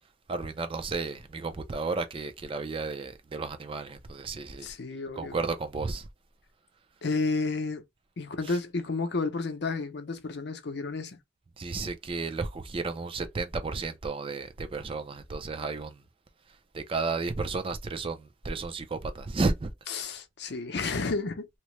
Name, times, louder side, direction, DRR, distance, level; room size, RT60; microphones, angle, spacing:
voice 1, 0.3-4.7 5.1-6.1 8.4-8.6 11.6-16.0 16.7-19.7, right 3 dB, 30° right, 0.4 m, -33 dB
voice 2, 4.6-5.4 7.0-7.8 8.2-11.2 20.0-21.5, left 3 dB, 60° left, 0.6 m, -31 dB
2.9 x 2.1 x 3.0 m
head